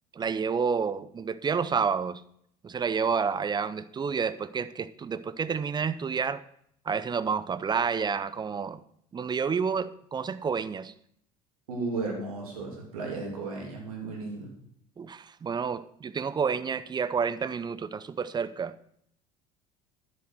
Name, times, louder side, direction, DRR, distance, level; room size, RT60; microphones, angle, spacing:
voice 1, 0.1-2.2 2.6-6.4 6.9-8.8 9.1-10.9 15.0-18.7, right 6 dB, 25° right, 0.6 m, -29 dB
voice 2, 11.7-14.5, right 3 dB, 75° right, 3.0 m, -34 dB
10.5 x 7.7 x 5.9 m
figure-of-eight pair, 65°, 19 cm